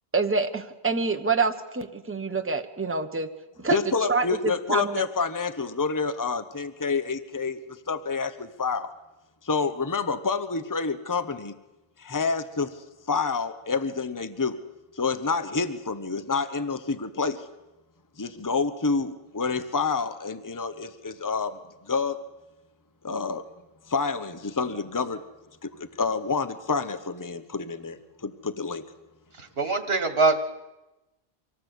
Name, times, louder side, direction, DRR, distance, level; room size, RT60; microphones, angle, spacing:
voice 1, 0.1-3.3 3.6-3.8 4.1-5.1, right 4 dB, 10° right, 6 dB, 1.0 m, -26 dB
voice 2, 3.7-8.9 9.4-11.5 12.0-12.8 13.1-14.6 14.9-17.5 18.2-21.6 21.8-22.2 23.0-23.4 23.9-25.2 25.6-28.8, left 4 dB, 20° left, 11 dB, 1.0 m, -28 dB
voice 3, 29.3-30.4, right 3 dB, 65° right, 9 dB, 1.9 m, -23 dB
25.5 x 18.0 x 8.2 m, 1.0 s
omnidirectional pair, 1.1 m